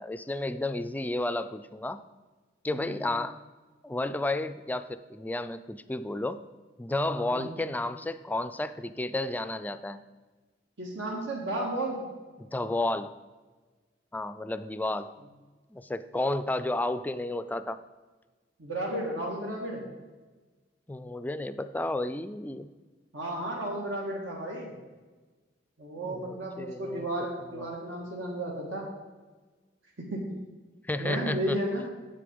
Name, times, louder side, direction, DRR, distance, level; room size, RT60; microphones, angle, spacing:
voice 1, 0.0-2.0 2.6-3.4 3.8-6.4 6.8-10.0 12.4-13.1 14.1-15.1 15.7-17.8 20.9-22.7 26.0-27.1 27.6-27.7 30.9-31.6, left 2 dB, 10° left, 12 dB, 0.3 m, -32 dB
voice 2, 2.7-3.1 7.3-7.6 10.8-12.0 18.6-19.8 23.1-24.7 25.8-28.9 30.0-30.2 31.0-31.8, right 1 dB, 85° right, -3 dB, 1.6 m, -33 dB
8.4 x 7.5 x 5.2 m, 1.3 s
head